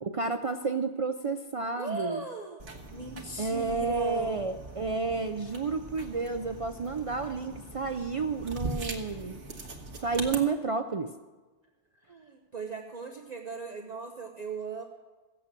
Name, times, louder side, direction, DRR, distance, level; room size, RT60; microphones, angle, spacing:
voice 1, 0.0-2.3 3.4-9.4 10.0-11.1, right 4 dB, 55° right, 7 dB, 0.3 m, -31 dB
voice 2, 1.7-2.6 2.9-4.4 12.1-14.8, right 4 dB, 40° right, 1 dB, 1.0 m, -38 dB
sound 1, 2.6-10.4, right 3 dB, 75° right, 1.8 m, -41 dB
16.0 x 7.8 x 7.5 m, 1.3 s
omnidirectional pair, 1.2 m